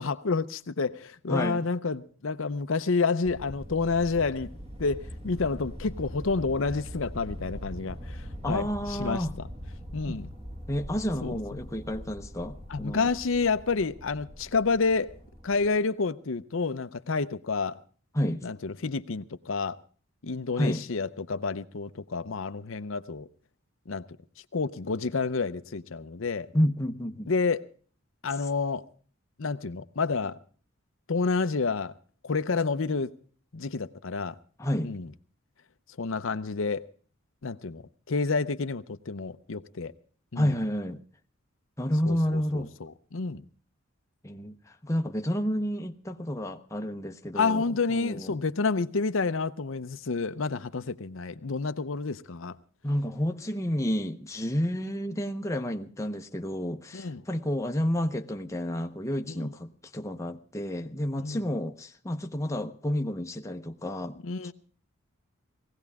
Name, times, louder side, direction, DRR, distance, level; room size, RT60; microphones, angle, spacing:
voice 1, 0.0-4.5 4.8-9.3 9.9-10.3 11.2-11.6 12.7-15.1 15.4-17.8 18.4-19.8 20.2-23.3 23.9-24.1 24.5-26.5 27.3-27.7 28.2-28.9 29.4-30.4 31.1-31.9 32.2-33.1 33.5-34.4 34.8-35.1 36.0-36.9 37.4-39.9 40.3-40.6 42.1-43.4 47.3-52.6 56.9-57.2 59.3-59.5 61.2-61.4 64.2-64.5, left 4 dB, 70° left, 0.7 m, -29 dB
voice 2, 1.3-1.6 8.4-9.3 10.1-10.2 10.7-13.1 18.1-18.5 20.6-20.8 26.5-27.3 34.6-35.0 40.3-41.0 41.8-42.7 44.2-48.4 52.8-64.2 64.4-64.5, equal, 15° left, 0.8 m, -30 dB
sound 1, 3.2-15.7, equal, 30° right, 1.9 m, -42 dB
19.5 x 16.0 x 3.5 m
head